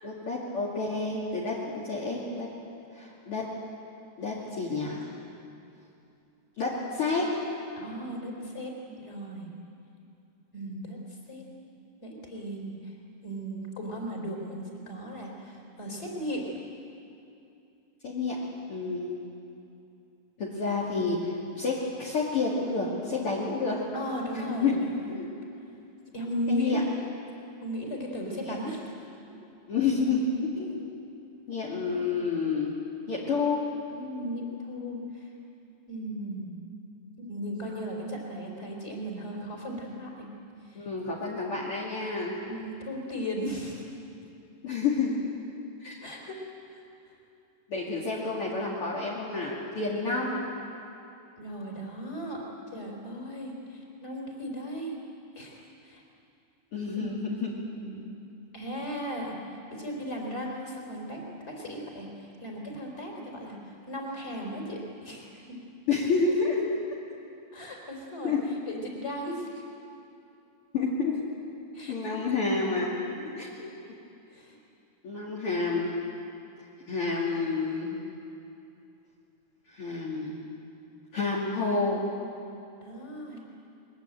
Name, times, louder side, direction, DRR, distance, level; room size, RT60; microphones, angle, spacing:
voice 1, 0.0-2.5 2.9-3.4 4.2-5.1 6.6-7.3 18.0-18.4 18.7-19.2 20.4-23.8 24.3-24.7 25.1-25.3 26.5-26.8 28.5-28.6 29.7-30.8 31.5-32.7 33.1-33.6 40.7-42.3 44.6-45.2 45.8-46.0 47.7-50.4 56.7-57.5 65.9-66.6 68.2-68.4 70.7-71.2 71.9-72.9 73.3-73.7 75.0-75.9 76.9-78.0 79.7-80.4 81.1-82.0, left 4 dB, 50° left, -5 dB, 3.2 m, -29 dB
voice 2, 7.8-9.5 10.5-11.4 12.0-12.9 13.2-16.5 23.9-25.1 26.1-26.8 27.6-28.9 33.9-35.3 35.9-36.6 37.2-40.3 40.6-40.9 42.5-43.8 46.0-46.4 46.7-46.8 51.4-52.4 52.7-54.9 55.4-56.0 56.7-58.1 58.5-65.6 67.5-68.4 68.7-69.6 71.7-72.2 72.9-73.3 74.3-74.6 82.8-83.4, equal, 20° left, 0 dB, 4.4 m, -36 dB
22.0 x 22.0 x 9.1 m, 2.7 s
omnidirectional pair, 3.4 m